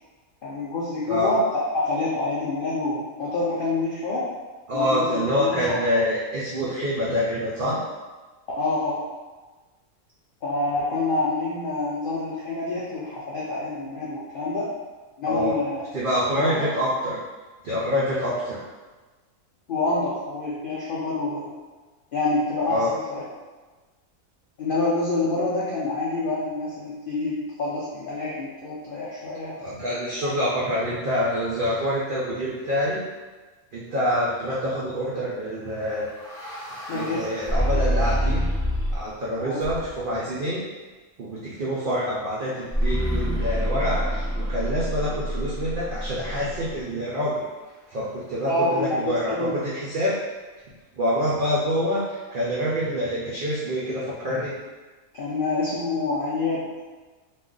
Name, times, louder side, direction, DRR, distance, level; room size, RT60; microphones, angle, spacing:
voice 1, 0.4-4.3 4.7-5.8 8.6-9.0 10.4-14.7 15.2-15.8 16.4-16.6 19.7-21.5 22.1-23.2 24.6-29.6 30.2-30.3 36.9-37.3 39.4-39.6 48.4-49.5 55.1-56.6, left 2 dB, 90° left, -7 dB, 0.4 m, -27 dB
voice 2, 4.7-7.8 15.3-15.6 15.9-17.2 17.6-18.6 22.7-22.9 29.6-33.0 33.7-36.1 36.7-38.5 38.9-40.6 41.2-47.4 47.9-50.2 50.9-54.6, equal, 80° right, -7 dB, 0.4 m, -26 dB
sound 1, 35.8-39.1 39.6-40.1 42.7-46.8, equal, 5° left, 0.3 m, -27 dB
2.4 x 2.3 x 3.7 m, 1.3 s
omnidirectional pair, 1.5 m